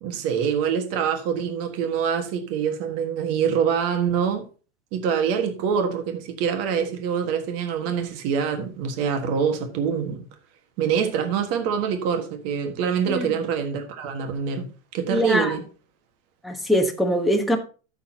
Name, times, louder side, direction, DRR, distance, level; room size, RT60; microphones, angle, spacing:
voice 1, 0.0-4.4 4.9-10.3 10.8-14.7 14.9-15.6, right 7 dB, 45° right, 1.6 m, -25 dB
voice 2, 15.1-15.6 16.4-17.6, equal, ahead, 1.1 m, -22 dB
13.5 x 7.0 x 2.9 m
supercardioid pair, 155°, 35 cm